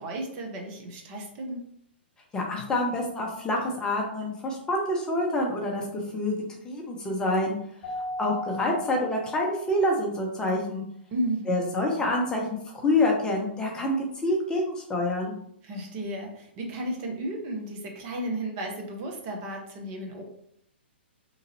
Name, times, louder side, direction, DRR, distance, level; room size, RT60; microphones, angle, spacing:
voice 1, 0.0-1.6 11.1-11.6 15.6-20.2, right 1 dB, 35° right, 1 dB, 0.8 m, -33 dB
voice 2, 2.3-6.4 6.6-7.6 8.2-10.8 11.5-15.3, left 1 dB, 10° left, 0 dB, 0.7 m, -27 dB
Keyboard (musical), 7.8-10.1, left 1 dB, 30° left, 1.3 m, -37 dB
3.9 x 3.1 x 2.7 m, 0.69 s
figure-of-eight pair, 120°, 6 cm